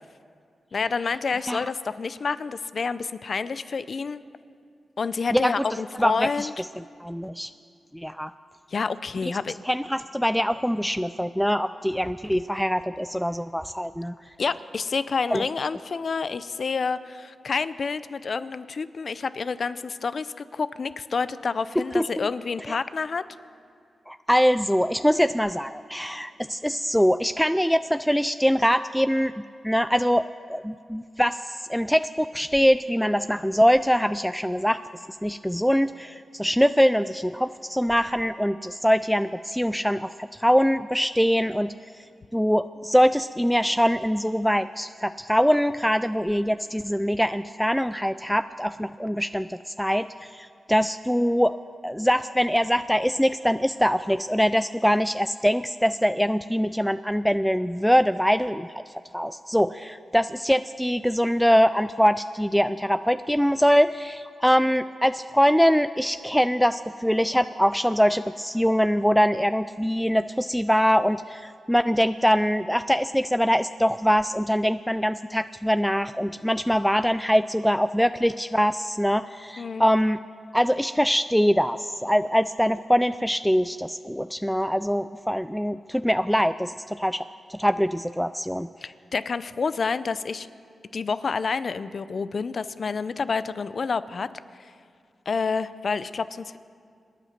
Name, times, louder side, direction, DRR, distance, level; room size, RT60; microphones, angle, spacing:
voice 1, 0.7-4.2 5.0-6.5 8.7-9.5 14.4-23.2 79.6-79.8 88.8-90.5 90.9-94.3 94.6-94.7 95.3-96.6, left 5 dB, 60° left, 15 dB, 0.6 m, -28 dB
voice 2, 6.0-6.5 7.0-7.5 7.9-8.3 9.2-9.3 9.7-14.1 15.3-15.4 21.9-22.3 22.7-22.8 24.1-29.3 29.6-34.8 35.2-41.7 42.3-51.6 51.8-80.2 80.5-87.2 87.5-88.7, equal, ahead, 12 dB, 0.4 m, -23 dB
26.5 x 9.3 x 5.9 m, 2.3 s
cardioid pair, 45°, 0 cm